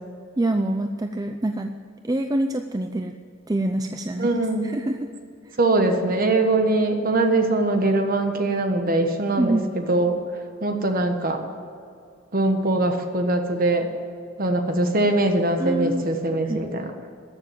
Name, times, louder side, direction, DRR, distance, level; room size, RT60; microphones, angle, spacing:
voice 1, 0.4-1.7 2.0-3.1 3.5-4.3 4.6-5.1 9.4-9.6 15.6-16.1 16.4-16.6, right 1 dB, 20° right, 6 dB, 0.4 m, -25 dB
voice 2, 4.2-4.7 5.6-10.2 10.6-11.4 12.3-13.9 14.4-16.9, right 2 dB, 45° right, 5 dB, 1.4 m, -22 dB
14.0 x 7.1 x 9.1 m, 2.4 s
head